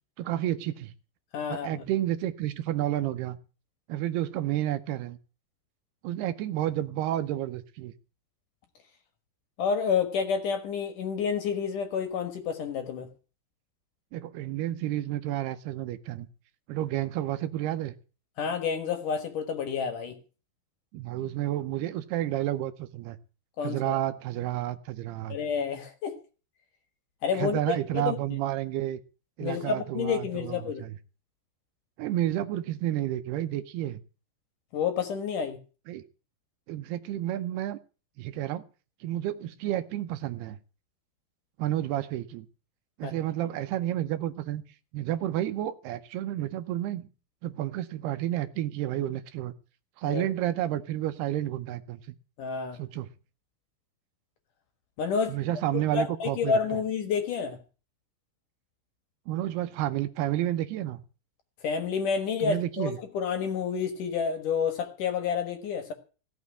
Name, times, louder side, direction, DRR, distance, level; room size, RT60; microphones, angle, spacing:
voice 1, 0.2-0.9 1.5-3.4 3.9-5.2 6.0-7.9 14.1-16.3 16.7-18.0 20.9-23.2 23.6-25.4 27.3-29.0 29.4-31.0 32.0-34.0 35.9-36.0 36.7-37.8 38.2-38.6 39.0-40.6 41.6-42.5 43.0-44.6 44.9-47.1 47.4-49.5 50.0-52.2 52.7-53.1 55.3-56.8 59.3-61.0 62.4-63.0, right 13 dB, 75° right, 2.6 m, -30 dB
voice 2, 1.3-1.8 9.6-13.1 18.4-20.2 23.6-24.0 25.3-26.1 27.2-27.6 27.9-28.2 29.4-30.8 34.7-35.6 43.0-43.1 50.0-50.2 52.4-52.8 55.0-55.4 55.9-57.6 61.6-65.9, left 6 dB, 60° left, 2.6 m, -29 dB
16.5 x 6.2 x 9.6 m
omnidirectional pair, 4.9 m